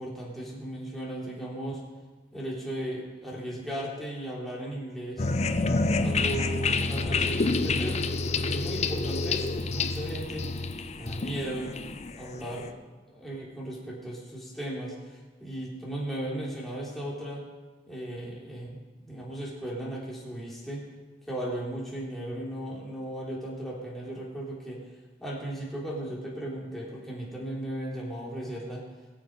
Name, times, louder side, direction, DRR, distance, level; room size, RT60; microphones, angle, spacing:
voice 1, 0.0-1.8 2.3-5.3 6.0-8.1 8.4-10.5 11.0-11.7 12.2-12.8 13.1-17.5 17.9-20.9 21.2-24.8 25.2-28.8, right 1 dB, ahead, -6 dB, 3.3 m, -36 dB
sound 1, 5.2-12.7, left 3 dB, 35° left, 0.6 m, -28 dB
21.5 x 7.2 x 5.3 m, 1.3 s
head